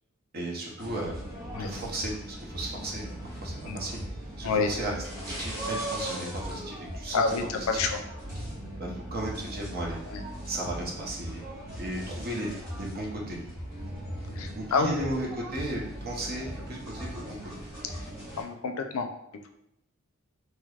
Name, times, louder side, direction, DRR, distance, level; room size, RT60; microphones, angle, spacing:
voice 1, 0.3-1.1 1.6-4.0 4.4-7.9 8.8-10.0 10.5-11.4 11.8-12.5 12.8-13.4 14.6-17.5, right 1 dB, 45° right, -2 dB, 0.7 m, -35 dB
sound 1, 0.8-18.4, right 1 dB, 15° right, 1.4 m, -38 dB
voice 2, 7.1-8.0 10.1-10.2 14.4-15.0 18.4-19.1, left 4 dB, 80° left, 5 dB, 0.4 m, -28 dB
3.2 x 2.9 x 2.3 m, 0.80 s
head